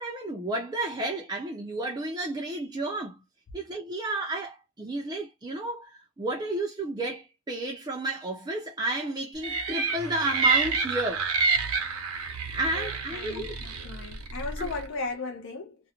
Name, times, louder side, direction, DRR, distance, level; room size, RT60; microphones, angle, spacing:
voice 1, 0.0-3.2 3.5-11.3 12.5-13.6 14.6-14.7, right 2 dB, 20° right, 0.4 m, -32 dB
sound 1, 9.4-14.9, right 4 dB, 80° right, 0.7 m, -28 dB
voice 2, 12.7-15.8, left 3 dB, 55° left, 0.5 m, -36 dB
2.5 x 2.1 x 2.8 m
head